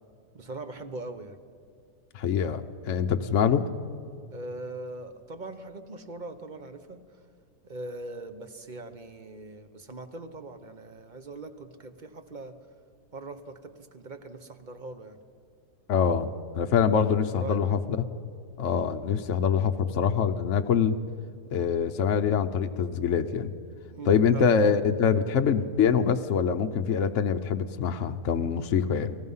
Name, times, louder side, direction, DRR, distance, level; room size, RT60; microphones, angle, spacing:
voice 1, 0.3-1.4 4.3-7.2 7.6-12.6 13.1-15.2 17.3-17.6 23.9-24.4, right 2 dB, 35° right, 9 dB, 1.0 m, -41 dB
voice 2, 2.1-3.7 15.9-16.3 16.6-17.8 18.6-21.0 21.5-23.5 24.1-29.2, left 7 dB, 55° left, 6 dB, 0.9 m, -24 dB
29.5 x 19.0 x 5.6 m, 2.3 s
omnidirectional pair, 1.8 m